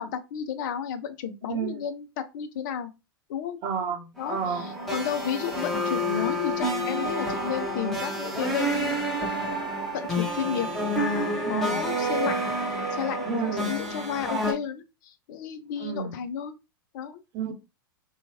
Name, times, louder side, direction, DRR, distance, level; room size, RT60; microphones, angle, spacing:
voice 1, 0.0-2.9 3.3-3.6 4.2-9.0 9.9-12.4 12.9-16.5 16.9-17.2, left 8 dB, 55° left, 0.6 m, -32 dB
voice 2, 1.5-1.8 3.6-4.7 11.4-11.8 13.3-13.7 15.8-16.2 17.3-17.5, right 6 dB, 40° right, 0.8 m, -31 dB
sound 1, 4.2-14.5, equal, 5° left, 1.0 m, -29 dB
2.9 x 2.3 x 2.8 m
hypercardioid pair, 100°, 12 cm